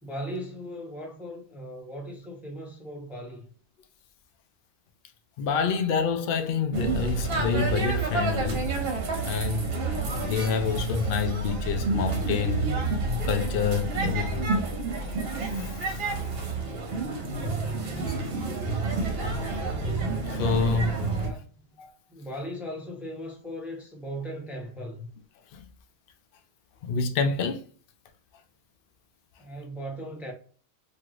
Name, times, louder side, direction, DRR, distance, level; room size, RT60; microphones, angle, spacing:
voice 1, 0.0-3.4 16.5-17.3 21.1-21.8 22.1-25.1 29.4-30.3, equal, ahead, 0.6 m, -38 dB
voice 2, 5.4-8.7 9.2-9.7 10.2-12.7 13.2-14.5 15.5-16.0 20.1-21.0 21.8-21.9 25.5-25.6 26.8-27.6, left 5 dB, 75° left, 0.5 m, -27 dB
sound 1, 6.7-21.3, right 3 dB, 50° right, 0.9 m, -29 dB
3.1 x 2.7 x 2.4 m
omnidirectional pair, 1.5 m